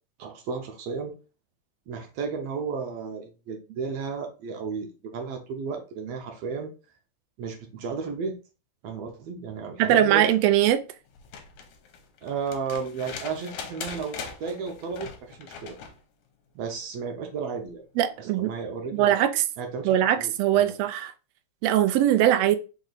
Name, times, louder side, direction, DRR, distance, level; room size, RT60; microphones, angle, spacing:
voice 1, 0.2-1.1 1.9-6.7 7.4-8.3 8.8-10.2 12.2-15.8 16.5-17.8 18.2-19.2 19.6-20.8, right 5 dB, 70° right, 1.6 m, -33 dB
voice 2, 9.8-10.8 18.0-18.5 18.9-19.4 19.8-21.1 21.6-22.6, right 11 dB, 90° right, 1.4 m, -21 dB
sound 1, 11.1-16.0 17.6-17.7, left 6 dB, 75° left, 2.0 m, -41 dB
5.0 x 2.6 x 3.9 m
omnidirectional pair, 3.5 m